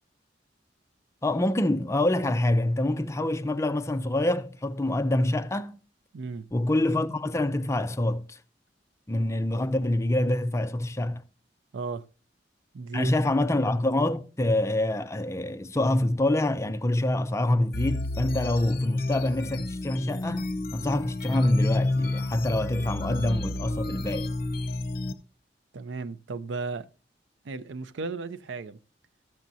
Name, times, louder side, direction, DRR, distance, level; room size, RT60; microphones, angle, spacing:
voice 1, 1.2-5.8 6.5-8.4 9.1-11.2 12.9-24.3, left 1 dB, 15° left, 0.5 m, -26 dB
voice 2, 6.1-6.5 11.7-12.1 12.7-13.2 13.5-13.6 25.7-26.9 27.4-28.8, right 4 dB, 85° right, 0.5 m, -35 dB
sound 1, 17.7-25.1, left 2 dB, 55° left, 0.8 m, -30 dB
13.5 x 7.2 x 2.7 m
head